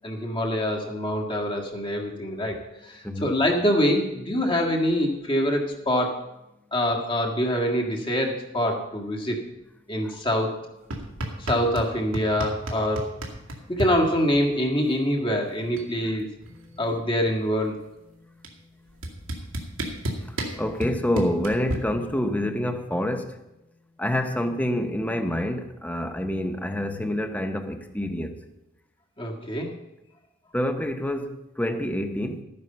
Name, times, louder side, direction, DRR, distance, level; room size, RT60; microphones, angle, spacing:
voice 1, 0.0-2.6 2.9-6.2 6.7-9.4 9.9-10.6 11.4-13.1 13.7-16.3 16.8-17.8 29.2-29.8, equal, 25° left, 1.7 m, -25 dB
sound 1, 10.9-11.9 12.1-13.9 15.2-15.3 15.5-15.9 16.2-17.6 18.4-18.5 19.0-21.7, right 1 dB, 85° right, 2.2 m, -31 dB
voice 2, 20.3-23.4 24.0-28.4 30.5-32.4, left 1 dB, 10° left, 0.9 m, -27 dB
13.0 x 9.6 x 5.5 m
head